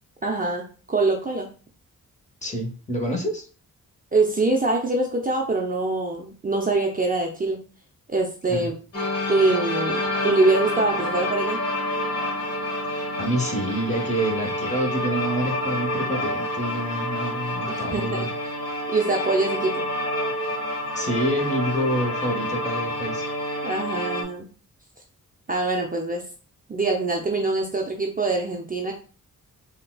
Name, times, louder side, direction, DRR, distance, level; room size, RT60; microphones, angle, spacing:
voice 1, 0.2-1.5 4.1-7.6 8.1-8.8 9.3-11.6 17.7-18.3 18.9-19.9 23.6-24.5 25.5-26.2 26.7-28.9, right 3 dB, 25° right, 1 dB, 0.5 m, -24 dB
voice 2, 2.4-3.4 8.5-8.7 12.9-18.3 20.9-23.2, equal, 20° left, 1 dB, 0.9 m, -27 dB
sound 1, 8.9-24.2, left 1 dB, 45° left, 1.2 m, -28 dB
3.8 x 2.3 x 2.3 m, 0.37 s
cardioid pair, 75°, 33 cm